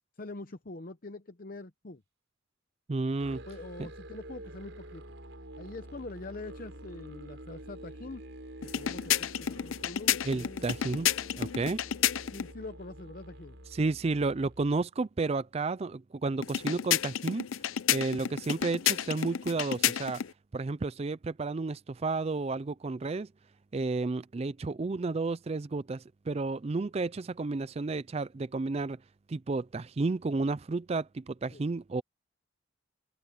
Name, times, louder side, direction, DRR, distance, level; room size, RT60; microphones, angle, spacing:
voice 1, 0.2-2.0 3.5-5.0 5.6-8.2 8.6-10.6 12.3-13.6 31.5-31.6, left 2 dB, 45° left, 0.8 m, -44 dB
voice 2, 2.9-3.4 3.8-3.9 10.2-11.1 11.4-11.8 13.7-17.5 17.9-20.2 20.5-23.3 23.7-29.0 29.3-32.0, right 3 dB, 30° right, 0.4 m, -32 dB
Musical instrument, 3.2-14.8, right 1 dB, 65° right, 4.8 m, -48 dB
sound 1, 8.6-12.5 16.4-20.3, left 10 dB, 80° left, 0.5 m, -31 dB
head